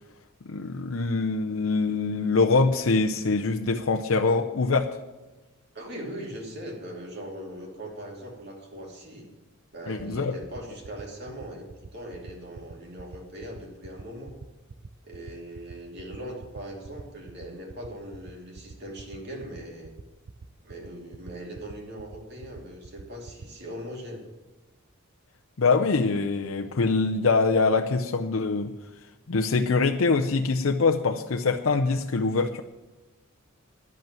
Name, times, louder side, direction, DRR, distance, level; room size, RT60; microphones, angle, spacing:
voice 1, 0.5-5.0 9.9-10.3 25.6-28.7 29.3-32.6, left 4 dB, 70° left, 3 dB, 0.6 m, -24 dB
voice 2, 5.7-9.3 9.7-14.3 15.0-19.9 20.6-24.2, right 1 dB, 50° right, 0 dB, 2.9 m, -40 dB
sound 1, 9.7-23.5, right 4 dB, 80° right, 0.6 m, -44 dB
10.5 x 8.2 x 8.9 m, 1.1 s
head